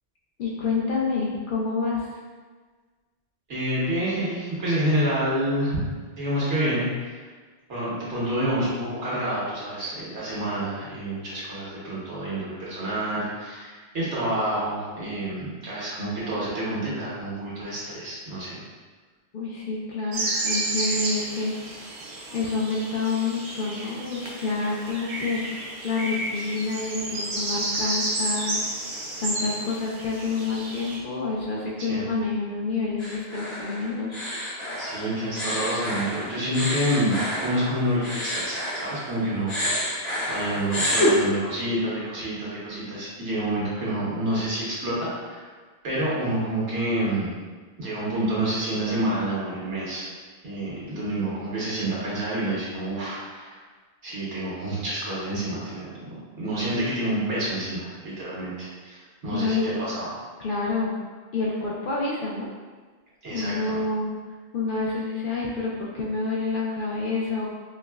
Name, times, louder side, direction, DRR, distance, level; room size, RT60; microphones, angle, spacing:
voice 1, 0.4-2.1 19.3-22.0 22.3-28.6 29.2-34.2 59.3-59.8 60.4-60.9 61.3-62.5 63.3-64.1 64.5-67.6, left 4 dB, 60° left, -4 dB, 0.6 m, -28 dB
voice 2, 3.5-7.2 7.7-18.6 31.8-32.0 34.8-37.2 37.4-45.5 45.8-47.4 47.8-50.0 50.4-53.5 54.0-60.1 63.2-63.8, right 1 dB, 80° right, -8 dB, 1.3 m, -28 dB
sound 1, 20.1-31.0, right 2 dB, 55° right, 0.6 m, -31 dB
sound 2, 33.0-39.2 39.5-41.1, left 1 dB, 40° left, 1.0 m, -29 dB
4.6 x 2.0 x 2.3 m, 1.4 s
omnidirectional pair, 1.1 m